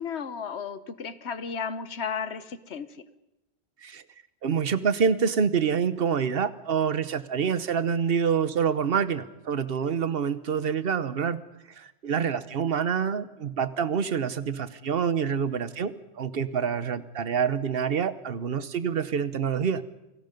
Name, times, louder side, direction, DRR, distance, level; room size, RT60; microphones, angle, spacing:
voice 1, 0.0-2.9, left 6 dB, 75° left, 13 dB, 1.3 m, -34 dB
voice 2, 4.4-11.4 11.8-19.8, right 7 dB, 60° right, 13 dB, 1.2 m, -27 dB
29.0 x 19.0 x 5.3 m, 0.93 s
omnidirectional pair, 1.1 m